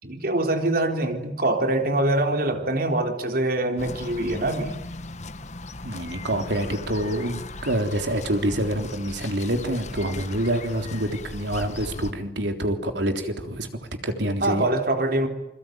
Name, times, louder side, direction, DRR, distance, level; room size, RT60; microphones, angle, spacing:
voice 1, 0.0-4.8 14.4-15.3, right 2 dB, 55° right, 5 dB, 3.8 m, -24 dB
sound 1, 3.8-12.1, left 2 dB, 40° left, 1.4 m, -38 dB
voice 2, 5.8-13.7 14.0-14.7, right 1 dB, 85° right, 6 dB, 3.6 m, -26 dB
28.0 x 22.5 x 9.3 m, 0.89 s
head